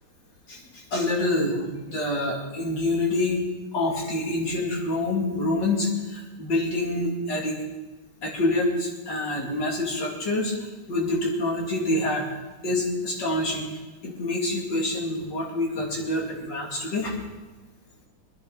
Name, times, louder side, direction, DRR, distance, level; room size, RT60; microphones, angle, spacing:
voice 1, 0.5-3.4 3.7-7.5 8.2-10.5 10.9-12.3 12.6-13.7 14.0-17.1, left 2 dB, 55° left, -2 dB, 3.4 m, -26 dB
24.5 x 10.0 x 4.1 m, 1.2 s
omnidirectional pair, 2.3 m